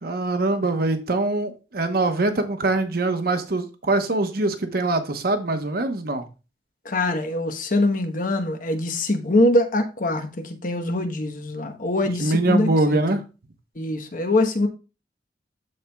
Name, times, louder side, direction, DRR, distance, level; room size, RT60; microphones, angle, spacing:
voice 1, 0.0-6.3 12.2-13.3, right 2 dB, 55° right, 0.9 m, -23 dB
voice 2, 6.8-13.0 13.8-14.7, left 1 dB, 45° left, 1.0 m, -23 dB
13.0 x 4.4 x 2.3 m
head